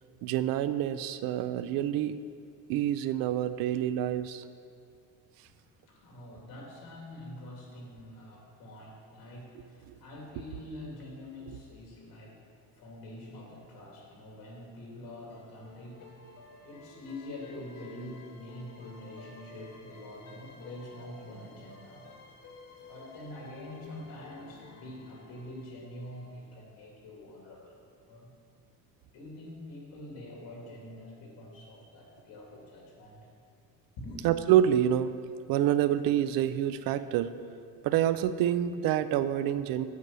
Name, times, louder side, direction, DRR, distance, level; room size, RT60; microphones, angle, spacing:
voice 1, 0.2-2.2 2.7-4.4 9.9-10.0 34.2-35.1 35.5-37.3 37.8-39.9, right 11 dB, 70° right, 13 dB, 0.5 m, -27 dB
voice 2, 5.5-16.1 16.6-22.1 22.7-28.3 29.1-33.2 34.0-34.3, left 1 dB, 85° left, -2 dB, 2.7 m, -45 dB
sound 1, 15.3-26.5, left 3 dB, 60° left, 1.7 m, -53 dB
8.3 x 6.2 x 7.4 m, 2.3 s
cardioid pair, 180°, 36 cm